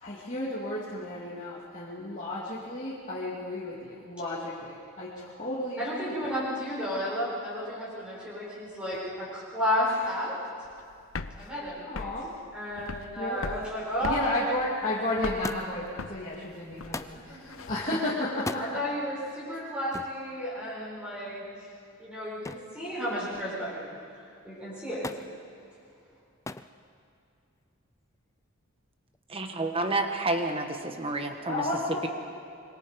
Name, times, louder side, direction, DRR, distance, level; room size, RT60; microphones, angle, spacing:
voice 1, 0.0-6.1 9.9-10.0 11.9-12.3 13.2-13.4 14.0-18.8 31.5-32.1, left 1 dB, 35° left, -7 dB, 2.8 m, -33 dB
voice 2, 5.8-10.3 11.4-12.1 12.5-14.2 17.3-17.6 18.6-21.4 22.0-23.9 24.4-25.1, equal, 5° right, -9 dB, 7.0 m, -32 dB
sound 1, 10.6-17.9, left 4 dB, 70° left, 0.8 m, -40 dB
Thump thud, 15.4-15.9 16.9-17.2 18.3-18.7 19.9-20.2 22.5-22.8 23.1-23.7 25.0-25.3 26.5-26.7 27.7-28.2 29.1-29.2, left 2 dB, 15° left, 0.4 m, -38 dB
voice 3, 29.3-31.6, right 2 dB, 25° right, 5 dB, 1.5 m, -29 dB
26.0 x 23.5 x 5.3 m, 2.5 s
head